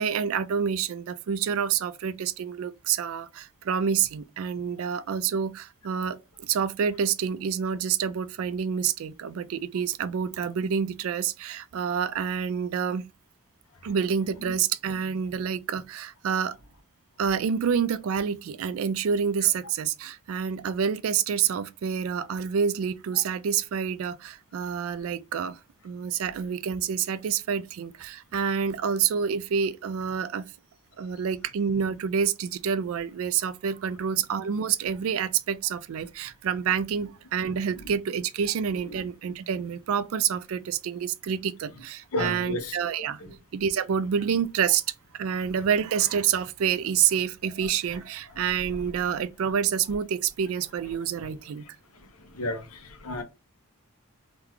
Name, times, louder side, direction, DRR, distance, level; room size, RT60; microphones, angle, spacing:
voice 1, 0.0-13.1 13.8-16.6 17.2-25.6 25.8-30.5 31.0-43.2 43.5-44.8 45.1-51.7, right 7 dB, 65° right, 0.3 m, -28 dB
voice 2, 42.1-42.8 43.2-43.3 51.2-51.3 52.3-53.2, left 1 dB, 85° left, 0.8 m, -32 dB
3.7 x 2.2 x 3.0 m
head